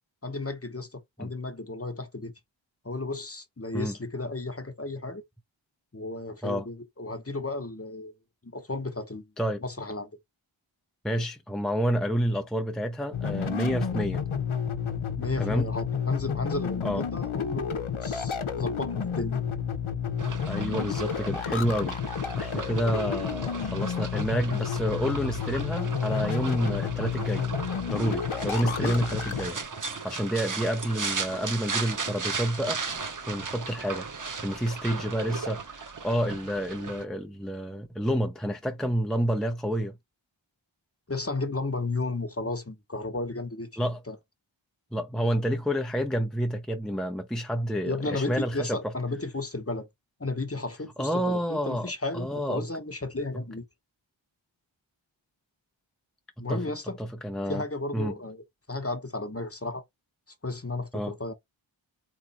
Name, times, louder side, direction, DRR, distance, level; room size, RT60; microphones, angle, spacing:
voice 1, 0.2-2.3 2.8-5.2 5.9-8.1 8.4-9.3 9.6-10.1 15.2-19.4 28.7-29.0 41.1-43.8 44.1-44.2 47.8-49.9 50.2-53.6 56.4-57.0 57.5-59.8 60.4-61.3, left 2 dB, 30° left, 1.0 m, -33 dB
voice 2, 11.0-14.2 15.4-15.7 16.8-17.0 20.4-22.0 22.4-27.5 27.9-32.8 33.3-34.1 34.4-39.9 43.8-44.0 44.9-48.9 51.0-52.7 56.4-56.6 57.0-57.6 57.9-58.2 60.9-61.1, equal, ahead, 0.5 m, -29 dB
sound 1, 13.1-29.5, left 7 dB, 75° left, 0.8 m, -31 dB
sound 2, 20.2-37.0, right 4 dB, 40° right, 0.7 m, -37 dB
3.8 x 3.1 x 4.1 m
wide cardioid pair, 40°, 49 cm